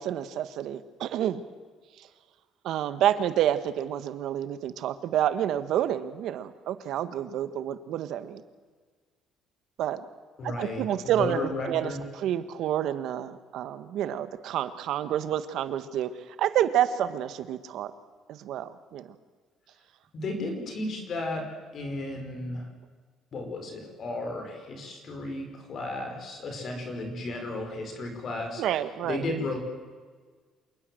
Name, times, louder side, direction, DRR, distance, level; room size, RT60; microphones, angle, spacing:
voice 1, 0.0-1.4 2.0-2.1 2.6-8.4 9.8-10.1 10.4-17.9 18.3-19.1 28.6-29.2, right 11 dB, 60° right, 12 dB, 1.5 m, -29 dB
voice 2, 10.4-12.0 20.1-21.5 21.7-22.7 23.3-28.6 29.0-29.6, left 2 dB, 40° left, 4 dB, 5.2 m, -34 dB
27.5 x 19.0 x 7.9 m, 1.5 s
cardioid pair, 165°, 0 cm